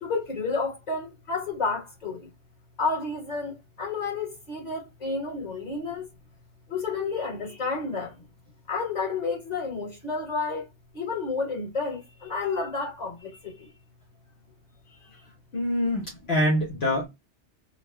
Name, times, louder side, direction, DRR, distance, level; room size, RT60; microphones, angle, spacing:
voice 1, 0.0-2.3 2.8-6.1 6.7-8.2 8.7-13.7 14.9-15.3, left 4 dB, 35° left, 1.9 m, -31 dB
voice 2, 15.5-17.1, left 1 dB, 60° left, 1.3 m, -25 dB
3.9 x 2.1 x 3.4 m
omnidirectional pair, 1.2 m